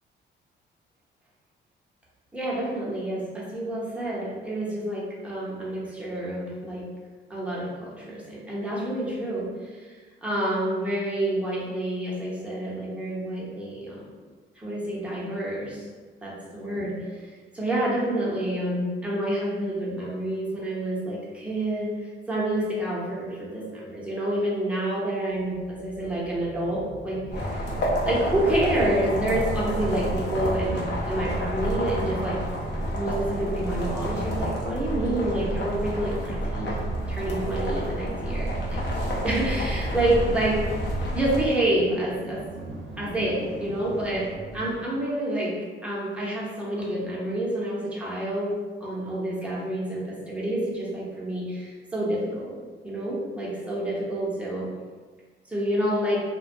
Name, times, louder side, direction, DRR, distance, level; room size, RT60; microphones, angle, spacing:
voice 1, 2.3-6.8 7.3-14.1 14.6-15.9 16.2-32.4 32.9-36.8 37.1-38.8 39.2-40.6 41.1-42.4 43.0-44.3 44.5-45.5 45.8-48.5 48.8-54.7 55.5-56.2, right 1 dB, 5° right, -7 dB, 0.7 m, -28 dB
sound 1, 25.3-44.8, right 2 dB, 90° right, 0.6 m, -39 dB
sound 2, 27.3-41.5, equal, 60° left, 0.6 m, -29 dB
2.2 x 2.1 x 2.6 m, 1.5 s
cardioid pair, 90°, 20 cm